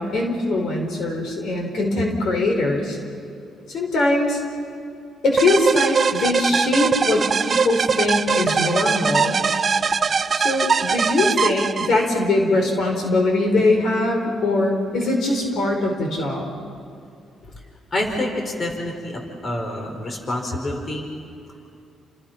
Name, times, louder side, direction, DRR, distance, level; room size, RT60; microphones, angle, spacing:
voice 1, 0.0-3.0 3.7-4.4 5.2-9.4 10.3-16.5, left 2 dB, 65° left, 2 dB, 4.6 m, -21 dB
sound 1, 5.4-12.2, right 5 dB, 40° right, 0.9 m, -21 dB
voice 2, 17.9-21.1, left 1 dB, 40° left, 3 dB, 4.7 m, -27 dB
29.5 x 28.0 x 5.9 m, 2.5 s
cardioid pair, 90°, 0 cm